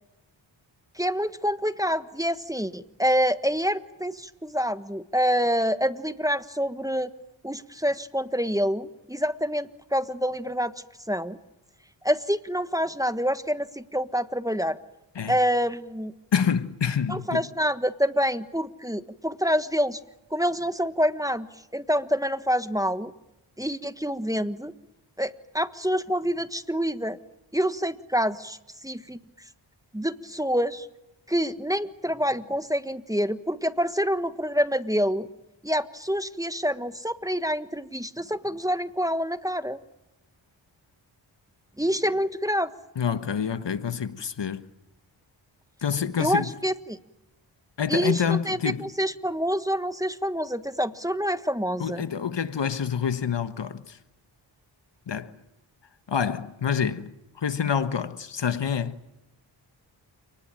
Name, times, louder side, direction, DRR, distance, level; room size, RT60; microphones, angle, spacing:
voice 1, 1.0-7.1 7.4-10.7 11.1-11.4 12.0-14.8 15.3-16.1 17.1-20.0 20.3-21.5 21.7-23.1 23.6-24.7 25.2-27.2 27.5-28.6 28.8-29.2 29.9-30.9 31.3-35.3 35.6-39.8 41.8-42.7 46.2-47.0 47.9-52.0, equal, 5° right, 1.3 m, -27 dB
voice 2, 16.3-17.5 42.9-44.7 45.8-46.5 47.8-48.9 51.8-54.0 55.1-55.3 56.1-59.0, left 7 dB, 60° left, 1.5 m, -27 dB
29.0 x 20.0 x 9.0 m
cardioid pair, 55°, 47 cm